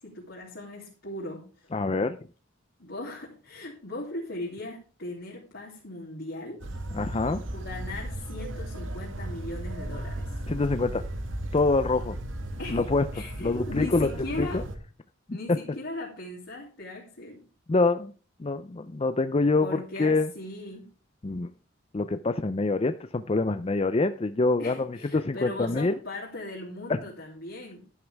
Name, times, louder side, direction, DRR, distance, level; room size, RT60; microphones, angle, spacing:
voice 1, 0.0-1.7 2.8-6.6 7.5-10.3 12.6-12.9 13.1-14.6 15.3-17.4 19.6-20.8 24.6-27.8, left 2 dB, 65° left, -3 dB, 2.9 m, -38 dB
voice 2, 1.7-2.2 6.9-7.4 10.5-11.0 11.5-12.2 12.7-13.1 13.4-14.1 14.4-14.6 17.7-18.1 18.4-20.3 21.2-21.5 21.9-25.9 26.9-27.0, left 3 dB, 30° left, 10 dB, 0.5 m, -25 dB
sound 1, 6.6-14.8, right 1 dB, 80° right, 2.0 m, -35 dB
12.0 x 11.5 x 3.4 m, 0.36 s
head